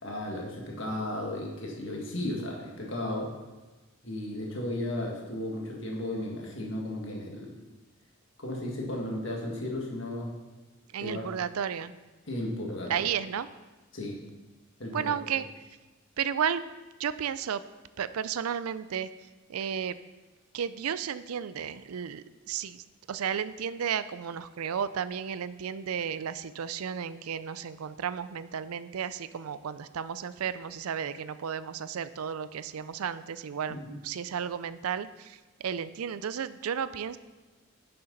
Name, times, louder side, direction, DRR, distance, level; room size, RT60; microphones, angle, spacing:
voice 1, 0.0-3.3 4.0-7.6 8.4-10.3 11.0-11.2 12.3-13.1 13.9-14.2 14.8-15.1 33.7-33.9, left 1 dB, 60° left, -1 dB, 1.9 m, -34 dB
voice 2, 10.9-11.9 12.9-13.5 14.9-15.5 16.2-16.6 17.0-17.6 18.0-19.1 19.5-20.0 20.5-33.8 34.0-37.2, right 8 dB, 90° right, 15 dB, 0.4 m, -33 dB
11.0 x 6.8 x 4.0 m, 1.2 s
head